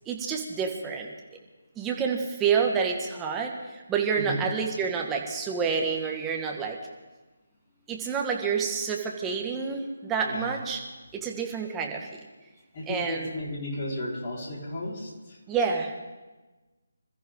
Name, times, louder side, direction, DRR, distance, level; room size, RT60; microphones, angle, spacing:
voice 1, 0.1-1.1 1.8-6.8 7.9-10.8 11.1-12.1 12.9-13.3 15.5-16.0, right 6 dB, 10° right, 1 dB, 1.9 m, -28 dB
voice 2, 10.2-10.6 12.7-15.4, left 1 dB, 30° left, -4 dB, 4.9 m, -34 dB
27.0 x 14.0 x 3.9 m, 1.2 s
figure-of-eight pair, 150°, 0 cm